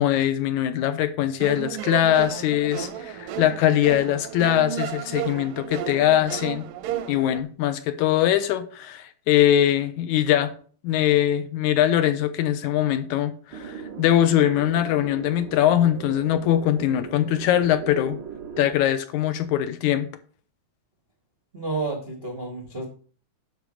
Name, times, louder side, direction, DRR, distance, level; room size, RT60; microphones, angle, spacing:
voice 1, 0.0-6.7 7.1-10.5 10.8-18.2 18.6-20.1, left 11 dB, 80° left, 10 dB, 1.9 m, -22 dB
sound 1, 1.4-7.4, right 10 dB, 90° right, 2.4 m, -33 dB
sound 2, 13.5-18.7, right 7 dB, 50° right, 1.8 m, -38 dB
voice 2, 21.5-22.8, right 3 dB, 70° right, 2 dB, 0.5 m, -30 dB
10.5 x 3.9 x 7.4 m, 0.44 s
omnidirectional pair, 3.8 m